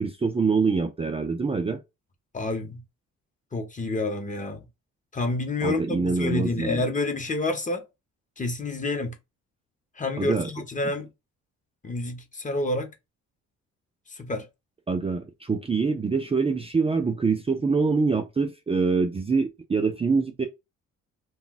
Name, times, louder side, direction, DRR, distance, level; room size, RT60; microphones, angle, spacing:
voice 1, 0.0-1.8 5.6-6.8 10.2-10.5 14.9-20.5, right 4 dB, 20° right, 0.5 m, -25 dB
voice 2, 2.3-2.8 3.5-4.7 5.1-7.8 8.4-9.2 10.0-11.1 11.8-12.9 14.1-14.5, left 2 dB, 25° left, 0.9 m, -28 dB
2.3 x 2.3 x 3.9 m
cardioid pair, 90°, 30 cm